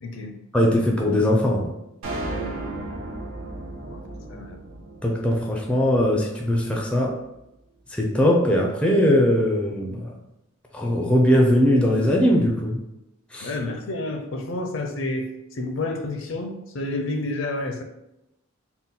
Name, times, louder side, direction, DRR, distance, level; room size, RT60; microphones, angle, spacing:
voice 1, 0.0-0.4 2.3-2.6 3.8-4.0 4.3-4.6 13.4-17.8, left 2 dB, 65° left, 5 dB, 0.5 m, -30 dB
voice 2, 0.5-1.7 5.0-7.2 7.9-10.1 10.7-12.8 13.3-13.5, equal, 5° left, -1 dB, 0.4 m, -20 dB
sound 1, 2.0-6.4, right 1 dB, 80° right, 0.7 m, -34 dB
3.7 x 2.2 x 4.1 m, 0.89 s
head